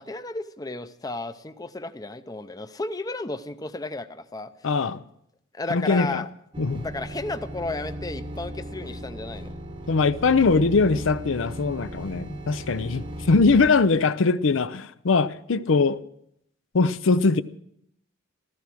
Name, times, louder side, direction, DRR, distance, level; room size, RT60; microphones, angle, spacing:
voice 1, 0.0-4.8 5.5-6.3 6.8-9.5, left 2 dB, 20° left, 0.6 m, -33 dB
voice 2, 4.6-5.0 5.7-6.2 6.6-6.9 9.9-16.0 16.7-17.4, left 4 dB, 75° left, 0.6 m, -21 dB
sound 1, 6.5-13.7, equal, 25° right, 0.9 m, -37 dB
15.0 x 14.0 x 6.2 m
head